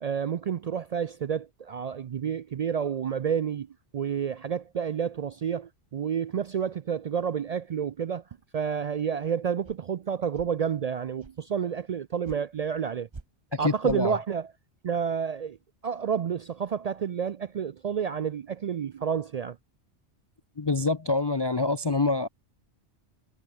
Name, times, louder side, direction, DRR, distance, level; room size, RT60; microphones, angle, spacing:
voice 1, 0.0-3.7 3.9-8.2 8.5-13.1 13.6-14.5 14.8-15.6 15.8-19.6, right 7 dB, 70° right, 0.3 m, -30 dB
sound 1, 9.6-9.8 10.3-10.5 11.2-11.4 12.2-12.4 13.1-13.2 13.8-14.0, right 3 dB, 25° right, 1.1 m, -44 dB
voice 2, 13.5-14.2 20.6-22.3, left 3 dB, 30° left, 0.5 m, -26 dB
omnidirectional pair, 1.2 m